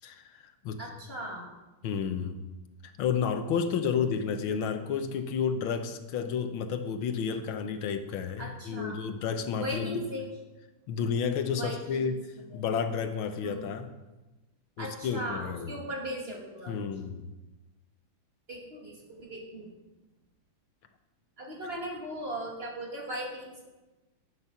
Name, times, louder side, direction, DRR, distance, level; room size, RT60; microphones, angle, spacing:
voice 1, 0.8-1.5 3.6-4.1 8.4-9.0 9.5-10.3 11.6-12.1 12.4-12.6 13.4-13.7 14.8-16.8 18.5-19.7 21.4-23.6, right 1 dB, 30° right, -2 dB, 2.6 m, -38 dB
voice 2, 1.8-2.4 3.0-10.0 10.9-12.2 12.5-13.9 14.8-15.8 16.7-17.2, left 6 dB, 80° left, 8 dB, 1.7 m, -31 dB
11.0 x 10.5 x 5.7 m, 1.1 s
omnidirectional pair, 2.2 m